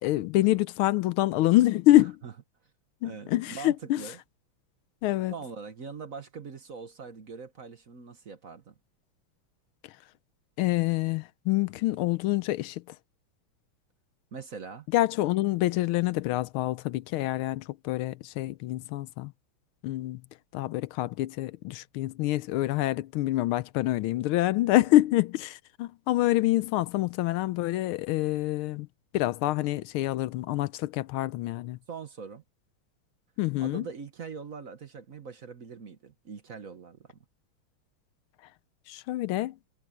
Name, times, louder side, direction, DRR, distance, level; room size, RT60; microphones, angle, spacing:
voice 1, 0.0-2.2 3.0-4.0 5.0-5.3 10.6-12.8 14.9-19.3 19.8-20.2 20.5-28.9 29.1-31.8 33.4-33.9 38.9-39.6, left 16 dB, 80° left, 1.4 m, -26 dB
voice 2, 3.0-4.2 5.3-8.7 14.3-14.9 31.9-32.4 33.6-37.2, right 5 dB, 45° right, 1.4 m, -42 dB
omnidirectional pair, 2.4 m